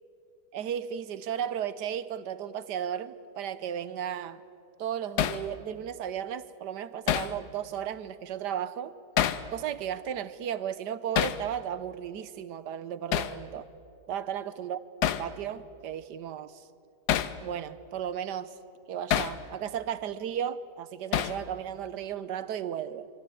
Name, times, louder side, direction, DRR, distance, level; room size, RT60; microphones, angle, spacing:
voice 1, 0.5-4.4 4.8-8.9 9.5-13.7 14.1-14.8 15.1-16.6 17.4-18.5 18.9-23.1, right 9 dB, 85° right, 1.5 m, -35 dB
Hammer, 5.2-5.4 7.1-7.4 9.2-9.5 11.2-11.4 13.1-13.4 15.0-15.3 17.1-17.4 19.1-19.4 21.1-21.4, left 10 dB, 75° left, 1.4 m, -27 dB
25.0 x 24.0 x 8.4 m
omnidirectional pair, 1.8 m